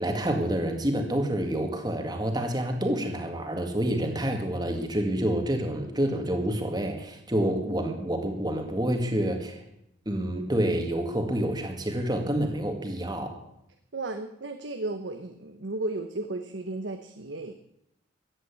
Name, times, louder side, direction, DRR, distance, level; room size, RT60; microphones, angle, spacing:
voice 1, 0.0-9.6 10.1-13.4, right 1 dB, 20° right, 4 dB, 2.0 m, -28 dB
voice 2, 13.9-17.5, right 2 dB, 75° right, 6 dB, 1.0 m, -34 dB
14.5 x 9.3 x 8.4 m, 0.81 s
head